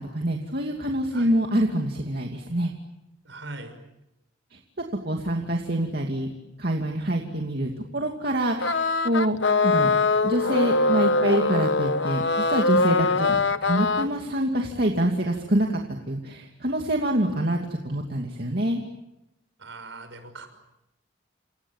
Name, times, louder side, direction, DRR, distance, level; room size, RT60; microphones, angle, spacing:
voice 1, 0.0-2.7 4.5-4.6 5.0-6.3 6.6-9.4 9.6-9.9 10.2-15.8 16.1-17.6 17.8-18.8, right 1 dB, 50° right, 1 dB, 2.5 m, -26 dB
voice 2, 3.2-3.8 13.1-13.2 19.6-20.5, right 2 dB, 70° right, 8 dB, 6.1 m, -40 dB
sound 1, 8.6-14.1, left 3 dB, 65° left, 1.1 m, -22 dB
29.0 x 28.0 x 7.3 m, 0.90 s
head